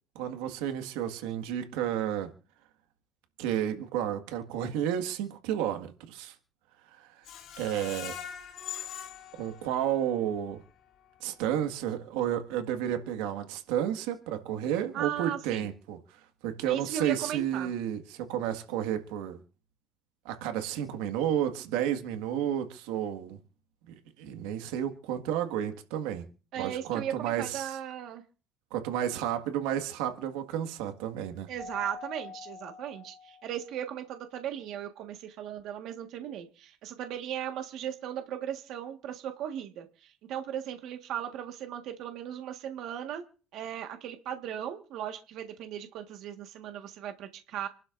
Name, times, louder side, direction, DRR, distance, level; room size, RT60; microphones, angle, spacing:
voice 1, 0.1-2.3 3.4-6.3 6.9-7.2 7.6-8.1 9.4-10.6 11.2-16.0 16.4-19.4 20.2-23.4 23.9-26.2 26.5-27.8 28.7-31.5, right 10 dB, 85° right, 1.8 m, -31 dB
Screech, 7.2-10.2 10.7-10.8 11.2-11.3, left 9 dB, 50° left, 4.5 m, -42 dB
voice 2, 14.9-15.7 16.6-17.7 26.5-28.2 31.5-43.2 43.5-47.7, right 10 dB, 50° right, 1.6 m, -37 dB
Keyboard (musical), 31.6-33.9, left 5 dB, 15° right, 3.9 m, -45 dB
28.0 x 12.0 x 2.6 m
cardioid pair, 155°, 0 cm